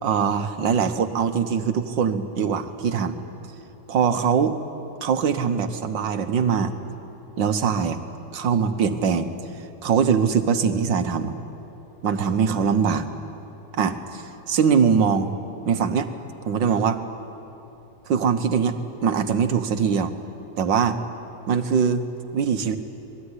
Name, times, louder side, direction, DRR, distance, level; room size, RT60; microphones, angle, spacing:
voice 1, 0.0-3.2 3.9-4.6 5.0-6.7 7.4-8.0 8.3-9.3 9.8-11.3 12.0-13.1 13.7-15.3 15.7-16.1 16.4-17.0 18.1-20.2 20.6-21.0 21.5-22.1 22.3-22.8, right 6 dB, 80° right, 9 dB, 2.0 m, -22 dB
26.5 x 21.0 x 9.9 m, 2.9 s
omnidirectional pair, 2.0 m